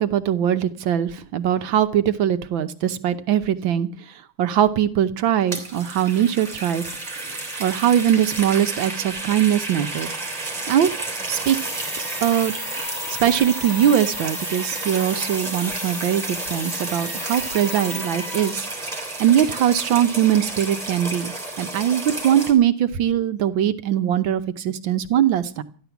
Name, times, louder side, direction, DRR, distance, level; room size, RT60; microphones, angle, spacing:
voice 1, 0.0-3.9 4.4-6.8 7.2-7.3 7.6-10.1 10.7-10.9 11.3-11.6 12.2-12.5 13.1-25.6, right 10 dB, 80° right, 11 dB, 1.6 m, -21 dB
sound 1, 5.3-22.5, right 2 dB, 15° right, 3.3 m, -32 dB
sound 2, 11.4-18.5, left 1 dB, 30° left, 7.6 m, -33 dB
13.5 x 11.5 x 7.0 m, 0.42 s
omnidirectional pair, 2.1 m